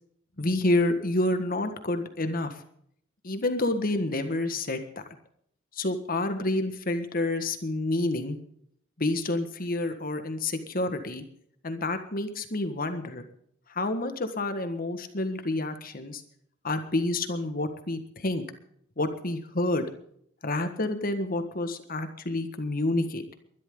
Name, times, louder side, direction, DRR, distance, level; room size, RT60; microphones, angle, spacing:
voice 1, 0.4-2.6 3.2-4.8 5.7-8.4 9.0-11.2 11.6-13.2 13.7-16.2 16.6-18.4 19.0-19.9 20.4-23.2, left 2 dB, 45° left, 8 dB, 1.7 m, -28 dB
22.0 x 12.0 x 3.9 m, 0.66 s
head